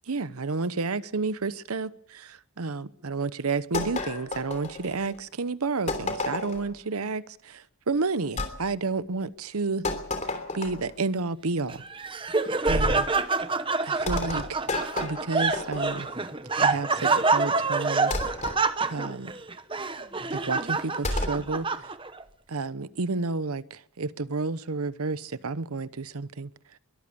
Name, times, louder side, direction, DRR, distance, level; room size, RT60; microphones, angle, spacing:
voice 1, 0.1-9.9 10.5-11.8 12.7-13.1 13.8-14.7 15.0-16.1 16.6-18.1 18.9-19.3 20.3-21.9 22.5-26.5, right 3 dB, 90° right, 0.9 m, -31 dB
sound 1, 3.7-5.2 5.9-6.7 8.4-8.6 9.8-11.0 12.7-13.1 14.1-16.2 18.1-18.6 21.0-21.4, left 2 dB, 35° left, 3.1 m, -31 dB
Laughter, 11.7-22.2, right 4 dB, 25° right, 1.0 m, -27 dB
22.5 x 14.0 x 8.6 m
head